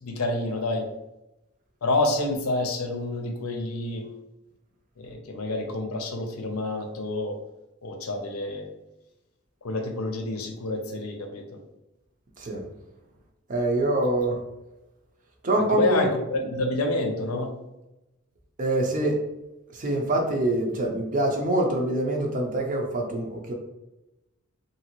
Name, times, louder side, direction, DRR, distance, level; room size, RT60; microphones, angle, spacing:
voice 1, 0.0-0.8 1.8-4.0 5.0-7.3 7.8-8.7 9.6-11.4 15.7-17.5, left 2 dB, 85° left, 4 dB, 0.6 m, -28 dB
voice 2, 13.5-14.4 15.4-16.0 18.6-19.2 19.7-23.5, right 1 dB, 35° right, 1 dB, 0.5 m, -25 dB
3.0 x 2.7 x 2.8 m, 0.96 s
head